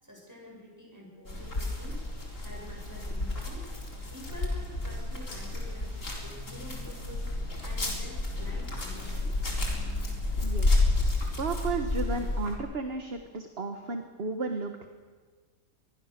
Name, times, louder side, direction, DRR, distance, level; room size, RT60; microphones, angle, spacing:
voice 1, 0.0-2.0 2.4-3.7 4.1-9.3, equal, 10° right, -2 dB, 7.7 m, -48 dB
sound 1, 1.3-12.6, left 2 dB, 45° left, 4.4 m, -31 dB
voice 2, 10.4-10.8 11.4-14.9, right 3 dB, 40° right, 6 dB, 1.5 m, -33 dB
25.0 x 21.5 x 6.7 m, 1.5 s
omnidirectional pair, 1.8 m